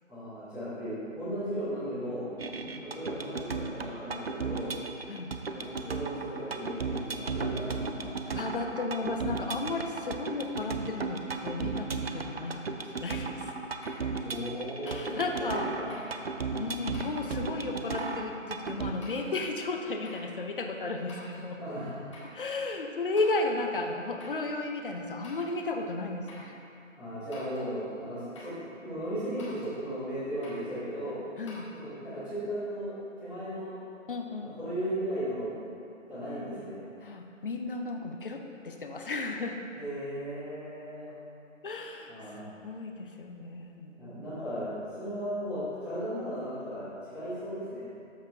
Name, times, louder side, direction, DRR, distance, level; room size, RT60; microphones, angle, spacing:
voice 1, 0.1-2.3 2.8-4.7 5.5-8.1 14.2-16.0 16.4-16.6 21.6-21.9 27.0-28.5 28.8-31.2 31.7-33.8 34.4-35.5 36.1-36.8 39.8-41.1 42.1-42.4 44.0-44.7 45.0-47.8, equal, 5° right, -16 dB, 1.5 m, -36 dB
sound 1, 2.4-18.9, right 4 dB, 50° right, 0.5 m, -35 dB
voice 2, 8.3-13.5 14.8-16.1 16.6-21.6 22.2-26.5 31.4-31.7 34.1-34.5 37.0-39.6 41.6-42.1 42.4-43.9, left 3 dB, 45° left, 3 dB, 0.7 m, -34 dB
sound 2, 13.8-14.1 14.9-15.2 15.9-16.2 16.9-17.3 18.0-18.2 19.0-19.4 20.0-20.3 21.1-21.5 22.1-22.4 23.2-23.5 24.2-24.5 25.2-25.6 26.3-26.5 27.3-27.7 28.3-28.6 29.4-29.8 30.4-30.7 31.5-31.6, left 2 dB, 25° left, 1.2 m, -49 dB
13.0 x 4.4 x 3.5 m, 2.7 s
figure-of-eight pair, 150°, 39 cm